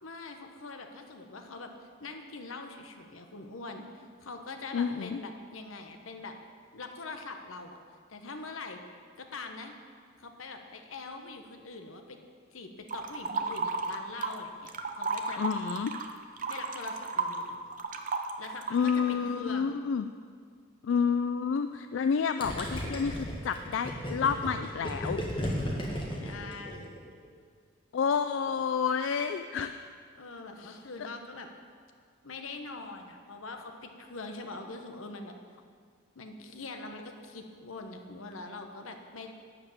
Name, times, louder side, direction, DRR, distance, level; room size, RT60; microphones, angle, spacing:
voice 1, 0.0-1.7 2.0-6.4 6.7-7.8 8.1-8.8 9.2-9.7 10.2-12.2 12.5-14.7 15.0-15.5 16.5-17.6 18.4-19.7 26.2-27.0 30.2-31.5 32.2-35.3 36.1-39.3, left 3 dB, 85° left, 5 dB, 1.1 m, -43 dB
voice 2, 4.7-5.2 15.4-15.9 18.7-20.1 20.8-25.2 27.9-29.9 30.6-30.8, left 6 dB, 70° left, 9 dB, 0.3 m, -29 dB
sound 1, 12.9-14.4 14.7-19.1, right 4 dB, 40° right, 0.7 m, -33 dB
Gurgling, 22.4-27.1, equal, 25° left, 1.6 m, -34 dB
12.0 x 5.1 x 8.8 m, 2.1 s
head